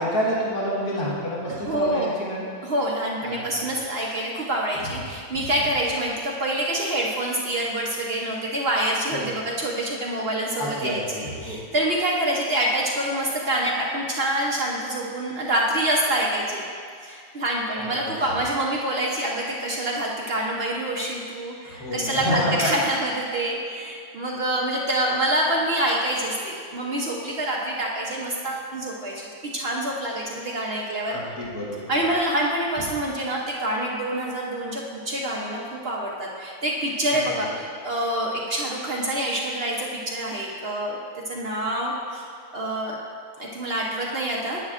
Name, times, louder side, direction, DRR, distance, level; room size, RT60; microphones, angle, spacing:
voice 1, 0.0-2.5 3.2-3.4 9.1-9.3 10.6-11.0 11.4-11.6 17.8-17.9 21.7-22.7 31.1-31.8 37.1-37.2, equal, 70° left, -6 dB, 2.0 m, -28 dB
voice 2, 1.5-2.2 2.6-16.6 17.0-31.2 31.9-37.5 37.8-41.0 41.3-42.3 42.5-43.0 43.4-44.6, right 1 dB, 50° right, -3 dB, 0.8 m, -26 dB
10.5 x 8.5 x 2.5 m, 2.2 s
omnidirectional pair, 1.7 m